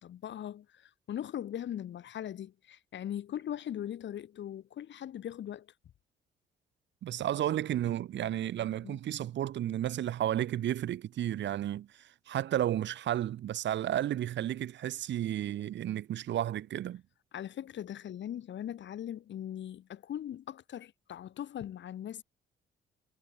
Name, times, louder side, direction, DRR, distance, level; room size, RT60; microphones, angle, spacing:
voice 1, 0.0-5.7 8.8-9.0 17.3-22.2, left 10 dB, 65° left, 3.6 m, -40 dB
voice 2, 7.0-17.0, right 12 dB, 65° right, 1.0 m, -32 dB
cardioid pair, 90°, 20 cm